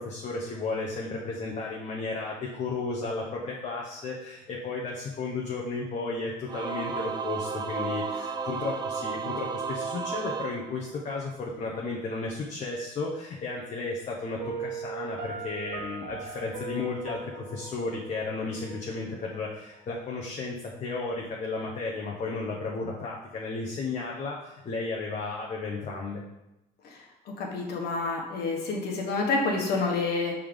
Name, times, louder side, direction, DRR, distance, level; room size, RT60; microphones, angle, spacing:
voice 1, 0.0-26.2, left 3 dB, 45° left, -2 dB, 1.0 m, -34 dB
Singing / Musical instrument, 6.5-11.3, right 5 dB, 25° right, 0.5 m, -33 dB
Piano, 14.4-19.3, right 4 dB, 70° right, 1.2 m, -39 dB
voice 2, 27.3-30.3, left 3 dB, 70° left, 0 dB, 1.4 m, -28 dB
5.6 x 3.7 x 5.1 m, 0.90 s
cardioid pair, 110°, 17 cm